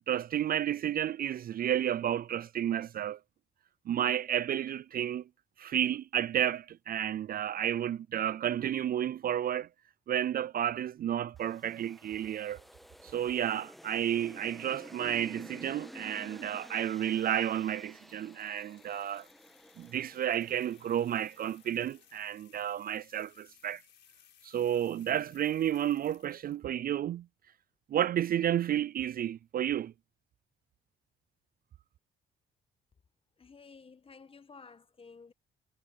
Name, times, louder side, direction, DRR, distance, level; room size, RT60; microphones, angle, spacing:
voice 1, 0.1-3.2 3.9-5.2 5.6-9.7 10.1-12.6 13.0-19.3 19.8-23.8 24.4-27.3 27.9-29.9, right 10 dB, 50° right, 0.4 m, -31 dB
sound 1, 11.4-21.7, equal, ahead, 1.6 m, -52 dB
sound 2, 17.9-26.7, left 9 dB, 65° left, 4.5 m, -63 dB
voice 2, 33.4-35.3, left 4 dB, 30° left, 1.2 m, -53 dB
cardioid pair, 90°, 20 cm